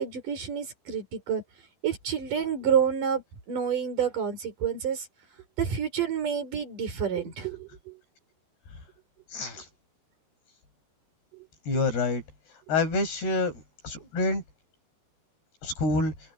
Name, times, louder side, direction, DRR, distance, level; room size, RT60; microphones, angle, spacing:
voice 1, 0.0-1.4 1.8-5.1 5.6-8.0 11.3-11.4, right 7 dB, 50° right, 6.5 m, -29 dB
voice 2, 9.3-9.7 11.7-12.2 12.7-14.4 15.6-16.1, left 2 dB, 75° left, 10.0 m, -27 dB
omnidirectional pair, 4.7 m